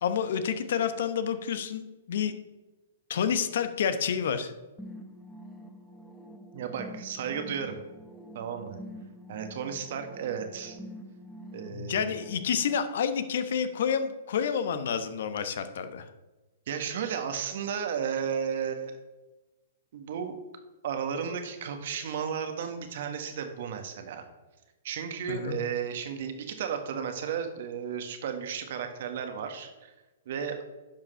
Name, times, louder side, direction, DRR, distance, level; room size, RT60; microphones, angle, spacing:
voice 1, 0.0-2.3 3.1-4.5 11.7-16.1 25.3-25.6, left 7 dB, 65° left, 10 dB, 1.0 m, -29 dB
sound 1, 4.8-12.8, equal, 5° left, 1.2 m, -46 dB
voice 2, 6.5-7.8 8.3-8.8 9.3-10.8 11.5-12.1 16.7-19.0 19.9-20.4 20.8-24.3 24.8-29.9 30.2-30.6, right 7 dB, 60° right, 6 dB, 1.6 m, -34 dB
10.5 x 5.7 x 5.7 m, 1.1 s
hypercardioid pair, 125°, 0 cm